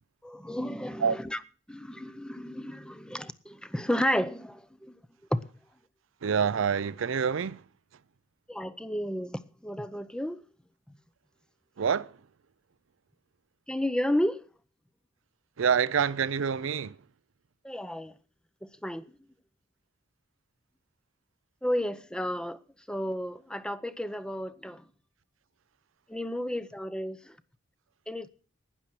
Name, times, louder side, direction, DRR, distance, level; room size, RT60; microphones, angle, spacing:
voice 1, 0.2-1.4 1.7-5.0 5.3-5.4 8.5-10.4 13.7-14.4 17.6-18.2 18.6-19.1 21.6-22.6 22.9-24.9 26.1-27.4 28.1-28.3, equal, 5° left, 0.7 m, -32 dB
voice 2, 6.2-7.6 11.8-12.2 15.6-17.0, right 6 dB, 85° right, 0.5 m, -27 dB
12.0 x 9.9 x 6.1 m
head